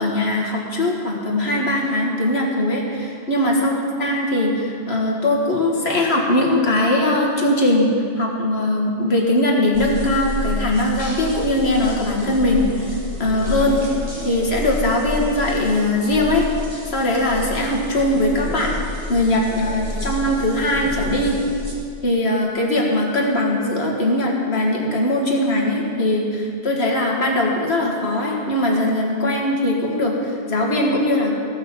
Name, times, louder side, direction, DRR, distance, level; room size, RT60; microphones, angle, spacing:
voice 1, 0.0-3.7 4.0-7.9 8.2-13.8 14.2-16.5 16.9-21.4 22.0-31.3, left 1 dB, 80° left, -1 dB, 2.0 m, -20 dB
sound 1, 9.7-21.7, left 1 dB, 25° right, 2.1 m, -30 dB
15.5 x 6.6 x 7.0 m, 2.3 s
omnidirectional pair, 1.1 m